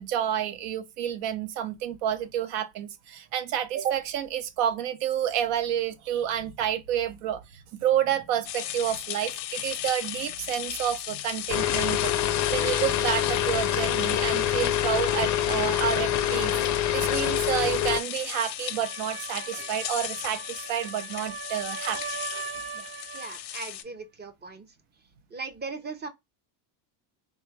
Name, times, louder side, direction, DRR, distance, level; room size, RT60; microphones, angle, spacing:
voice 1, 0.0-22.0 22.7-22.8, right 10 dB, 90° right, 0.8 m, -29 dB
sound 1, 8.5-23.8, left 13 dB, 85° left, 0.7 m, -36 dB
sound 2, 11.5-18.0, left 11 dB, 40° left, 0.4 m, -26 dB
sound 3, 18.5-23.4, right 6 dB, 45° right, 1.0 m, -39 dB
voice 2, 23.1-24.7 25.3-26.1, right 4 dB, 25° right, 0.4 m, -38 dB
3.4 x 2.3 x 3.1 m
cardioid pair, 115°, 50 cm